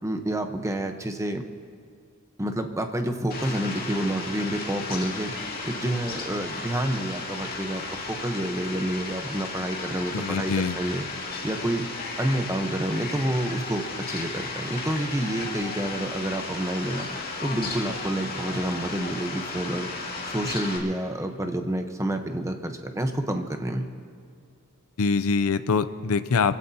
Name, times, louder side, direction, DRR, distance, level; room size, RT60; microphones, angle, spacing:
voice 1, 0.0-1.4 2.4-5.3 5.6-11.0 11.4-11.9 12.2-17.1 17.4-19.9 20.2-23.9, right 1 dB, 15° right, 5 dB, 1.0 m, -29 dB
Fowl, 3.3-20.8, left 3 dB, 45° left, 2.3 m, -34 dB
voice 2, 10.1-10.8 25.0-26.6, left 5 dB, 70° left, 12 dB, 0.6 m, -24 dB
25.0 x 16.0 x 2.9 m, 2.2 s
head